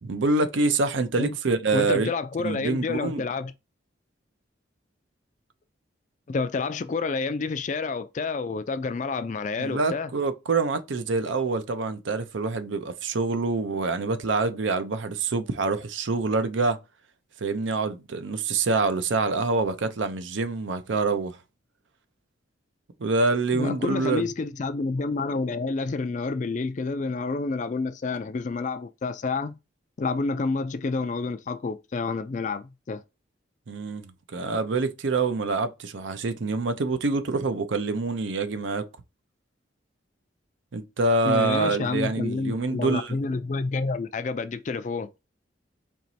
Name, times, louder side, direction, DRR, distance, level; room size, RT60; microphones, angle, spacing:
voice 1, 0.0-2.1 2.4-3.2 9.6-16.8 17.4-21.4 23.0-24.3 33.7-38.9 40.7-43.2, right 3 dB, 75° right, 0.6 m, -26 dB
voice 2, 1.7-3.5 6.3-10.1 23.5-29.6 30.0-33.0 41.2-45.1, left 4 dB, 40° left, 0.3 m, -29 dB
4.4 x 3.0 x 2.7 m
head